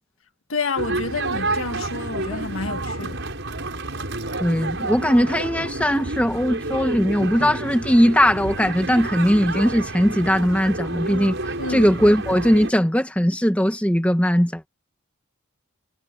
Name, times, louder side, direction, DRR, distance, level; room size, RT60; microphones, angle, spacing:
voice 1, 0.5-3.2 11.6-11.9, left 3 dB, 70° left, 1.9 m, -29 dB
sound 1, 0.7-12.7, right 2 dB, 55° right, 7.2 m, -29 dB
voice 2, 4.4-14.7, equal, 5° left, 1.4 m, -19 dB
head